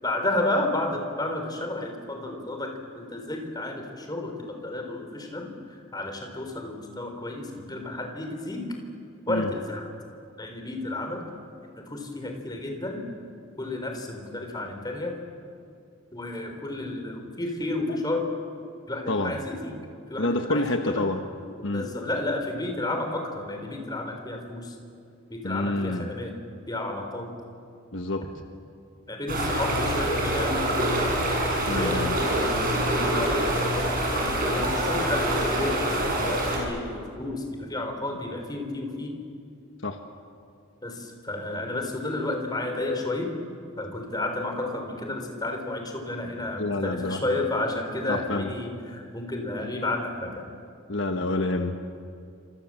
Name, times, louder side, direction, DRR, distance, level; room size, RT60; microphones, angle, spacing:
voice 1, 0.0-5.5 5.9-8.7 9.3-9.8 10.4-11.2 11.8-13.0 13.6-15.2 16.1-18.3 18.9-19.8 20.1-21.0 21.7-24.8 25.3-26.4 26.7-27.3 29.1-30.8 31.7-33.9 34.3-39.2 40.8-43.3 43.8-50.5, left 2 dB, 20° left, 4 dB, 3.8 m, -32 dB
voice 2, 20.2-21.2 21.6-21.9 25.4-26.1 27.9-28.3 31.7-32.2 39.8-40.0 46.6-47.2 48.1-48.5 50.9-51.8, left 2 dB, 60° left, 5 dB, 1.3 m, -28 dB
sound 1, 29.3-36.6, right 1 dB, 40° right, 7.1 m, -25 dB
28.0 x 27.0 x 7.6 m, 2.4 s
head